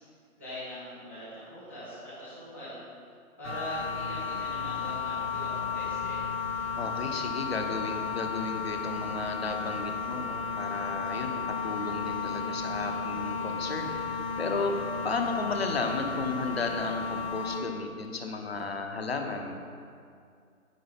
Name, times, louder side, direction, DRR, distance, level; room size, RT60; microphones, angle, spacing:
voice 1, 0.4-2.8 3.4-6.2, equal, 10° left, -15 dB, 0.7 m, -41 dB
sound 1, 3.4-17.6, left 5 dB, 70° left, 1.9 m, -33 dB
voice 2, 6.8-19.6, left 3 dB, 45° left, 4 dB, 1.0 m, -34 dB
10.0 x 4.7 x 7.1 m, 2.4 s
figure-of-eight pair, 150°, 43 cm